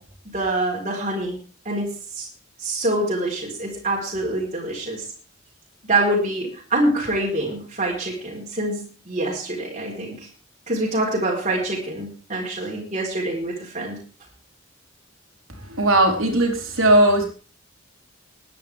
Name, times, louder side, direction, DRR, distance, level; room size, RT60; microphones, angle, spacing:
voice 1, 0.3-1.4 1.6-1.9 2.1-2.3 2.6-5.0 5.9-10.2 10.7-14.0, right 1 dB, 35° right, -4 dB, 4.4 m, -25 dB
voice 2, 15.7-17.2, right 1 dB, 80° right, 2 dB, 4.1 m, -17 dB
21.0 x 10.0 x 3.6 m, 0.39 s
head